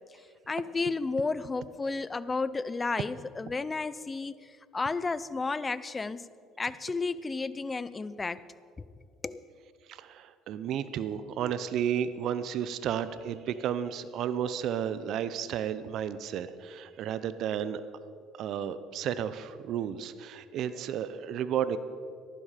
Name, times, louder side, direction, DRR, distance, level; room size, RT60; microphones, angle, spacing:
voice 1, 0.5-6.3 6.6-8.4 9.2-9.4, left 3 dB, 25° left, 16 dB, 0.6 m, -32 dB
voice 2, 9.9-17.8 18.4-21.8, right 9 dB, 65° right, 14 dB, 0.7 m, -32 dB
14.5 x 12.0 x 5.0 m, 2.2 s
supercardioid pair, 80°, 0 cm